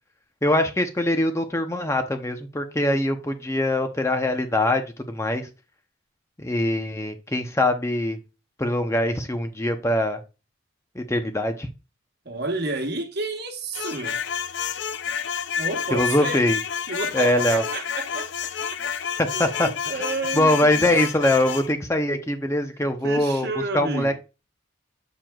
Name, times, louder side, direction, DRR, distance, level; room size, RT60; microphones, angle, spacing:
voice 1, 0.4-5.5 6.4-8.2 8.6-10.2 11.0-11.7 15.9-16.6 17.1-17.6 19.2-19.7 20.3-23.5 23.7-24.1, left 1 dB, 15° left, 0.6 m, -23 dB
voice 2, 12.2-14.2 15.6-16.5 16.9-18.5 19.3-20.9 23.0-24.1, right 2 dB, 55° right, 1.2 m, -31 dB
sound 1, 13.7-21.7, left 7 dB, 65° left, 0.5 m, -30 dB
7.6 x 6.7 x 2.3 m
head